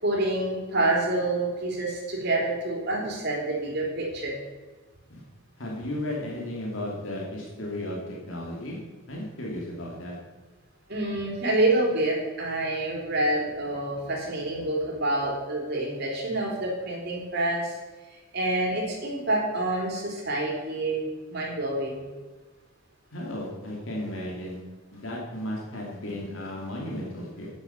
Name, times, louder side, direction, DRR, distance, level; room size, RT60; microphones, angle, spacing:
voice 1, 0.0-4.3 10.9-17.8 18.1-21.0 21.3-22.1, right 2 dB, 55° right, -2 dB, 3.4 m, -27 dB
voice 2, 5.6-8.8 9.1-10.2 23.1-24.6 24.9-27.5, left 1 dB, 70° left, -3 dB, 2.6 m, -34 dB
9.8 x 7.6 x 7.1 m, 1.3 s
head